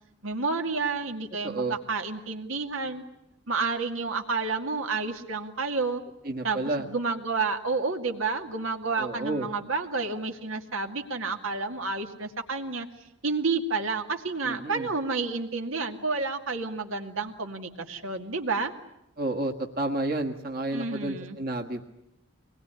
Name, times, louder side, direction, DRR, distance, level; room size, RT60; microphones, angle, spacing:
voice 1, 0.2-3.0 3.5-6.0 6.4-12.9 13.2-18.7 20.7-21.4, right 4 dB, 80° right, 4 dB, 2.4 m, -30 dB
voice 2, 1.4-1.8 6.2-6.9 9.0-9.5 14.4-14.9 19.2-21.8, right 2 dB, 45° right, 2 dB, 1.6 m, -30 dB
24.5 x 20.5 x 9.9 m, 0.85 s
head